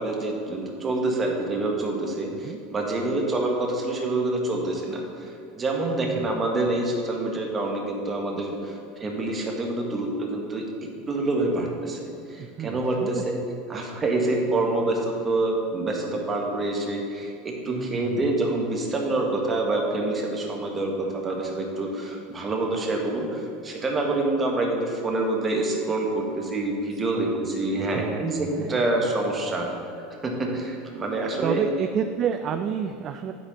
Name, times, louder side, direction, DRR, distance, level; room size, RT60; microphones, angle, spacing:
voice 1, 0.0-10.6 11.1-13.4 13.7-29.7 30.2-31.6, right 2 dB, 25° right, 1 dB, 1.6 m, -27 dB
voice 2, 12.4-13.2 17.6-18.3 27.1-27.3 27.8-28.8 31.4-33.3, right 8 dB, 40° right, 7 dB, 0.4 m, -30 dB
9.2 x 4.1 x 7.0 m, 2.5 s
figure-of-eight pair, 75°, 0 cm